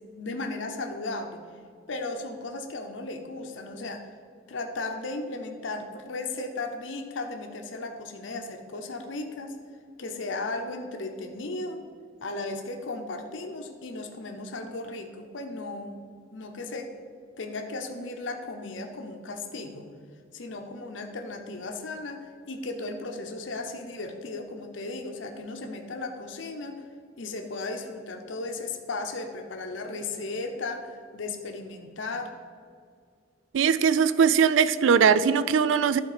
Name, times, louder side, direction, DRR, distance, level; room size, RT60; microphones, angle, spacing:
voice 1, 0.0-1.4 1.9-4.0 4.5-9.5 10.0-11.8 12.2-16.0 16.3-16.9 17.4-19.9 20.3-26.8 27.2-32.3, left 2 dB, 75° left, 0.8 m, -35 dB
voice 2, 33.5-36.0, right 6 dB, 80° right, 0.4 m, -20 dB
11.5 x 4.4 x 4.9 m
head